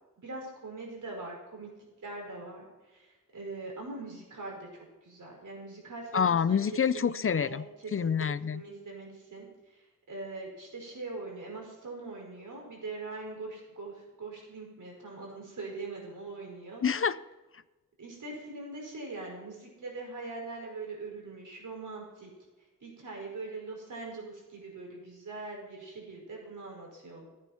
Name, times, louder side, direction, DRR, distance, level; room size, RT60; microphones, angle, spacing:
voice 1, 0.2-1.7 2.0-2.7 2.9-4.7 5.0-6.6 6.9-8.1 8.5-9.8 10.1-16.8 18.0-22.3 22.8-27.3, right 3 dB, 75° right, 0 dB, 5.1 m, -42 dB
voice 2, 6.1-7.6 7.9-8.6 16.8-17.2, left 7 dB, 45° left, 16 dB, 0.5 m, -27 dB
15.0 x 8.9 x 5.8 m, 1.2 s
wide cardioid pair, 140°, 31 cm